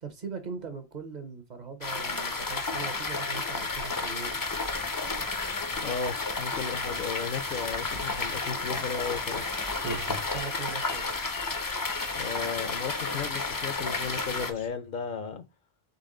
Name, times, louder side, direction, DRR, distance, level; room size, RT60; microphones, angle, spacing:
voice 1, 0.0-4.4 10.3-11.1, right 5 dB, 50° right, 0.8 m, -40 dB
sound 1, 1.8-14.5, left 3 dB, 30° left, 0.4 m, -32 dB
sound 2, 4.4-10.4, right 2 dB, 30° right, 0.4 m, -44 dB
sound 3, 5.1-14.7, left 6 dB, 85° left, 1.4 m, -51 dB
voice 2, 5.8-9.5 12.1-15.4, left 6 dB, 60° left, 0.7 m, -35 dB
4.1 x 3.3 x 3.7 m
omnidirectional pair, 1.1 m